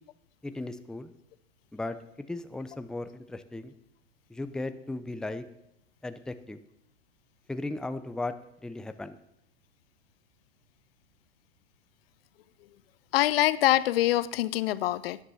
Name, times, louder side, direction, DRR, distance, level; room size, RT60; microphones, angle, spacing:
voice 1, 0.4-1.1 1.7-3.7 4.3-5.4 6.0-6.6 7.5-8.3 8.6-9.2, left 2 dB, ahead, 0.6 m, -36 dB
voice 2, 13.1-15.2, left 15 dB, 65° left, 0.7 m, -24 dB
13.0 x 10.0 x 5.7 m
hypercardioid pair, 110°, 32 cm